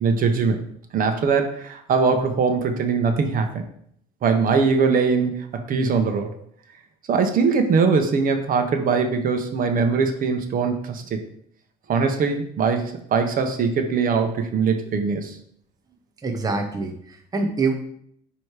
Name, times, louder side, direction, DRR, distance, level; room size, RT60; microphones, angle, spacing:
voice 1, 0.0-0.7 0.9-3.7 4.2-6.3 7.1-11.2 11.9-15.4, right 5 dB, 55° right, 6 dB, 1.0 m, -21 dB
voice 2, 16.2-17.7, right 3 dB, 20° right, 4 dB, 0.8 m, -25 dB
9.2 x 3.1 x 4.9 m, 0.67 s
cardioid pair, 110°, 17 cm